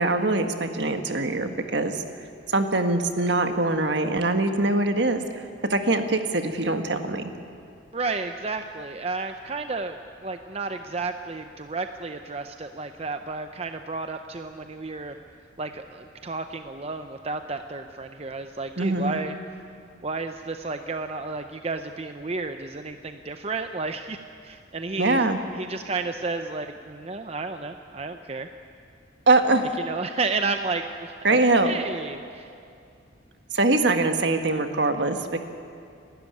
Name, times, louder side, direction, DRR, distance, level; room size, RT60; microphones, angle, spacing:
voice 1, 0.0-2.0 2.5-5.4 5.7-7.3 18.8-19.2 25.0-25.4 29.3-29.7 31.2-31.7 33.5-35.4, right 2 dB, 60° right, 6 dB, 1.6 m, -23 dB
voice 2, 7.9-15.2 15.6-19.4 20.0-25.3 25.5-28.5 29.8-31.4 31.6-32.5, right 3 dB, 30° right, 7 dB, 0.6 m, -32 dB
30.0 x 12.5 x 9.6 m, 2.4 s
head